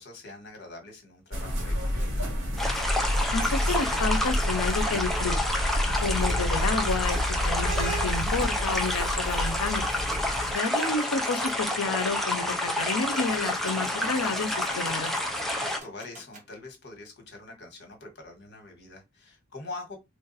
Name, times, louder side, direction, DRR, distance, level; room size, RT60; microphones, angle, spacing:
voice 1, 0.0-1.8 10.1-10.3 15.6-20.0, left 2 dB, 50° left, 1.4 m, -44 dB
sound 1, 1.3-10.5, equal, 60° right, 2.1 m, -29 dB
sound 2, 2.6-15.8, left 1 dB, ahead, 0.5 m, -29 dB
voice 2, 3.3-5.4 6.0-9.8 10.5-14.5 14.7-15.1, left 4 dB, 90° left, 0.8 m, -30 dB
sound 3, 9.1-11.6 13.1-16.5, right 2 dB, 35° right, 1.6 m, -50 dB
3.4 x 2.6 x 4.0 m
head